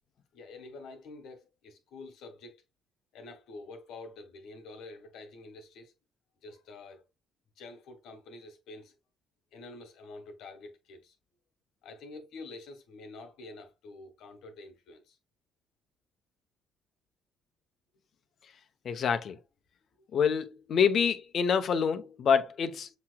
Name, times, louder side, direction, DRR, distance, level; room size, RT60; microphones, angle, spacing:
voice 1, 0.3-2.6 3.1-5.9 6.4-7.0 7.6-8.9 9.5-11.2 11.8-15.2 20.0-20.1, left 3 dB, 85° left, 1.3 m, -47 dB
voice 2, 18.8-19.4 20.1-22.9, left 7 dB, 60° left, 0.8 m, -26 dB
7.2 x 2.9 x 2.2 m
cardioid pair, 90°, 0 cm